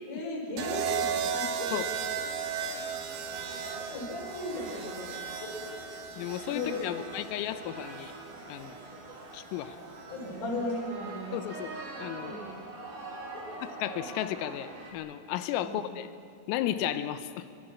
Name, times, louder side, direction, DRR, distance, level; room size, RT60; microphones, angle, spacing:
voice 1, 0.1-1.7 3.6-5.5 6.5-6.8 10.1-11.4 12.1-12.5 13.3-13.6 15.6-15.8, left 2 dB, 45° left, -2 dB, 6.6 m, -36 dB
sound 1, 0.6-8.7 9.9-10.3, right 7 dB, 90° right, 4.3 m, -36 dB
sound 2, 1.9-14.9, right 2 dB, 45° right, 5.7 m, -44 dB
voice 2, 6.2-8.1 8.5-8.8 9.3-9.8 11.3-11.7 12.0-12.3 13.6-16.1 16.5-17.5, left 11 dB, 85° left, 11 dB, 3.5 m, -34 dB
27.0 x 24.5 x 6.3 m, 2.3 s
omnidirectional pair, 5.9 m